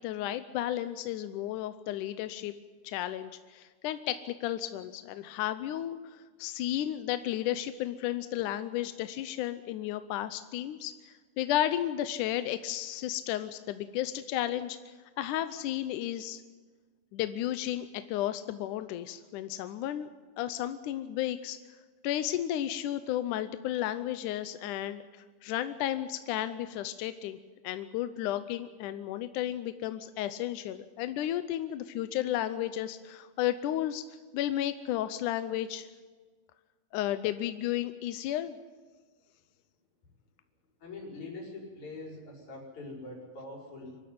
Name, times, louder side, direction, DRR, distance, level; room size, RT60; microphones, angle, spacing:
voice 1, 0.0-2.5 2.8-16.4 17.1-20.1 20.4-21.6 22.0-27.4 27.6-34.0 34.3-35.9 36.9-38.6, left 12 dB, 75° left, 11 dB, 1.9 m, -33 dB
voice 2, 40.8-44.0, left 2 dB, 50° left, 0 dB, 6.3 m, -43 dB
24.0 x 13.0 x 9.5 m, 1.4 s
omnidirectional pair, 4.3 m